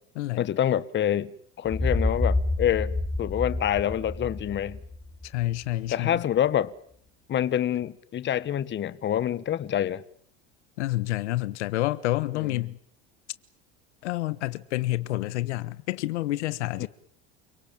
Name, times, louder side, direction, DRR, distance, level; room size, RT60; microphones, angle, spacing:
voice 1, 0.4-2.9 3.2-4.8 5.9-6.7 7.3-10.0 12.3-12.6 16.8-16.9, left 10 dB, 35° left, 1.4 m, -26 dB
sound 1, 1.6-5.5, left 2 dB, 5° left, 4.1 m, -28 dB
voice 2, 5.2-6.2 10.8-12.8 14.0-16.9, left 17 dB, 85° left, 1.4 m, -28 dB
29.5 x 18.5 x 9.0 m
supercardioid pair, 115°, 33 cm